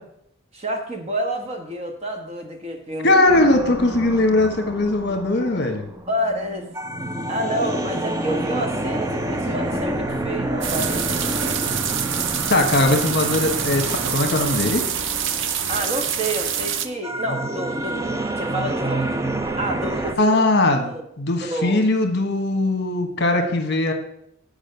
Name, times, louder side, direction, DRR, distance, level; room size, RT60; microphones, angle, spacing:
voice 1, 0.5-3.2 6.1-6.7 7.3-11.6 15.7-18.1 18.4-19.2 19.5-20.5 20.8-21.0 21.4-21.8, right 1 dB, 30° right, 4 dB, 1.1 m, -28 dB
voice 2, 3.0-5.9 9.5-9.8 12.5-14.8 20.2-20.9 21.2-23.9, left 2 dB, 50° left, 4 dB, 1.2 m, -20 dB
sound 1, 3.3-20.1, right 1 dB, 15° right, 0.5 m, -29 dB
sound 2, 10.6-16.9, right 8 dB, 60° right, 0.6 m, -26 dB
8.7 x 5.2 x 6.6 m, 0.75 s
head